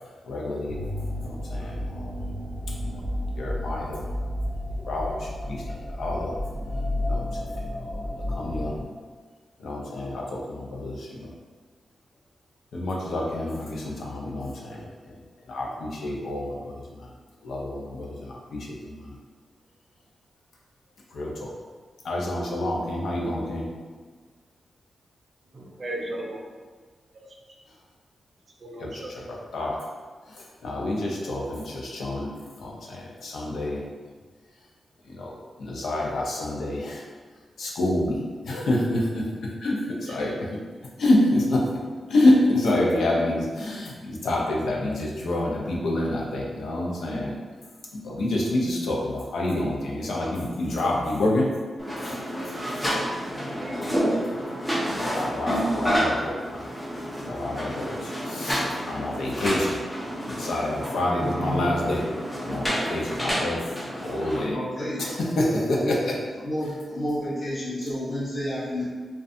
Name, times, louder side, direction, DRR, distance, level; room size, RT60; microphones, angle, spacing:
voice 1, 0.2-0.8 1.2-2.1 2.8-3.0 3.4-4.1 4.9-6.4 7.0-8.8 9.6-11.3 12.7-17.1 17.4-19.2 21.1-21.5 22.0-23.7 28.8-29.9 30.3-33.8 35.0-37.1 37.6-40.5 41.0-41.7 42.1-47.4 47.9-51.5 52.0-52.5 54.9-56.7 57.2-59.8 60.3-62.1 62.4-63.8 64.0-64.6 65.0-66.2, left 1 dB, 85° left, -2 dB, 0.5 m, -28 dB
sound 1, 0.7-8.8, left 1 dB, 55° left, 1.5 m, -31 dB
voice 2, 25.5-26.4 27.1-27.3 28.6-29.1 52.5-52.8 53.4-54.0, right 1 dB, 50° right, -2 dB, 0.5 m, -36 dB
sound 2, 51.8-64.4, equal, 10° left, 0.5 m, -29 dB
voice 3, 64.1-65.1 65.8-66.0 66.4-68.8, equal, 40° left, -9 dB, 1.0 m, -30 dB
2.5 x 2.2 x 2.6 m, 1.5 s
wide cardioid pair, 110°, 0 cm